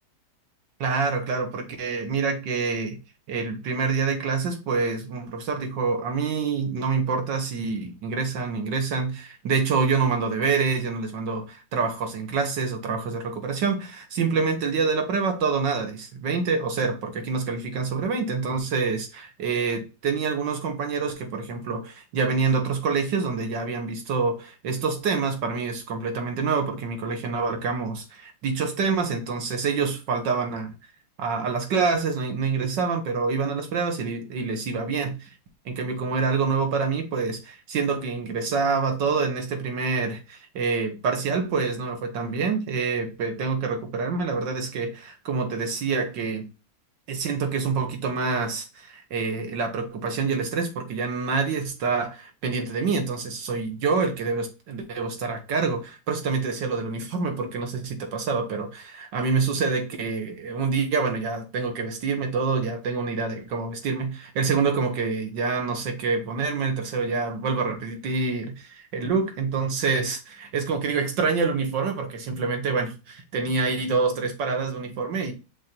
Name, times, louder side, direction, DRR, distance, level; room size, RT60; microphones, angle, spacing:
voice 1, 0.8-3.0 3.3-30.7 31.2-35.3 35.7-46.5 47.1-75.3, right 4 dB, 65° right, 1.9 m, -26 dB
6.0 x 3.9 x 4.3 m
omnidirectional pair, 2.1 m